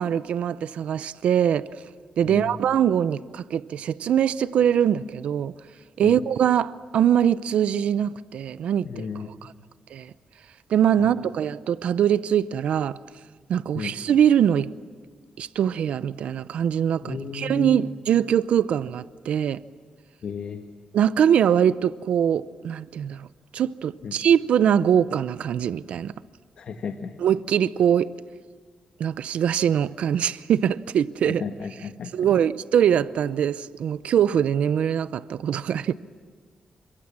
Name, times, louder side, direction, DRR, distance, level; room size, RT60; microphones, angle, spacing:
voice 1, 0.0-1.7 2.2-5.5 6.0-9.1 9.4-9.5 9.9-10.1 10.7-13.0 13.5-14.7 15.4-19.6 20.9-23.3 23.5-26.1 27.2-28.1 29.0-31.4 32.1-35.9, right 9 dB, 85° right, 0.7 m, -22 dB
voice 2, 8.8-9.3 11.0-11.1 13.7-13.9 17.0-17.8 20.2-20.6 24.0-24.2 26.6-27.2 31.2-32.1, left 5 dB, 65° left, 1.6 m, -33 dB
29.0 x 25.0 x 7.5 m
wide cardioid pair, 135°, 2 cm